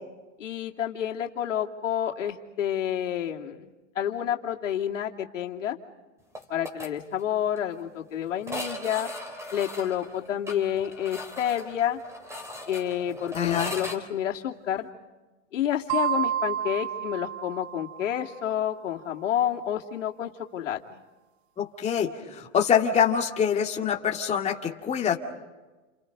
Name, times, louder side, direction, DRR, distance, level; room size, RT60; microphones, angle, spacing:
voice 1, 0.4-5.8 6.5-9.1 9.5-12.0 12.7-14.9 15.5-21.0, left 10 dB, 85° left, 1 dB, 2.7 m, -29 dB
sound 1, 6.3-6.9 7.2-7.3 7.6-7.7 8.4-14.0, equal, 5° right, 3.8 m, -38 dB
voice 2, 13.3-13.7 21.6-25.2, left 8 dB, 20° left, 1 dB, 2.2 m, -25 dB
sound 2, 15.9-18.4, right 10 dB, 45° right, 0.8 m, -30 dB
30.0 x 28.5 x 5.3 m, 1.2 s
hypercardioid pair, 140°, 37 cm